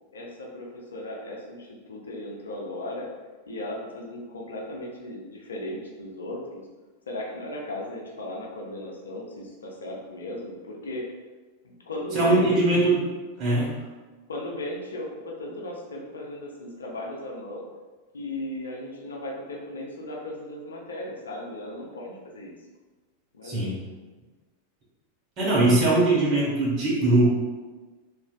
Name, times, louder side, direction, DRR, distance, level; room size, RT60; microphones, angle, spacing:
voice 1, 0.1-3.1 3.5-6.4 7.1-11.0 11.6-12.7 14.3-17.6 18.1-22.5 23.3-23.9, left 1 dB, 70° left, -2 dB, 0.5 m, -36 dB
voice 2, 12.1-13.0 13.4-13.8 23.4-23.7 25.4-27.3, right 2 dB, 35° right, -5 dB, 1.0 m, -21 dB
2.9 x 2.4 x 2.3 m, 1.3 s
figure-of-eight pair, 90°, 0 cm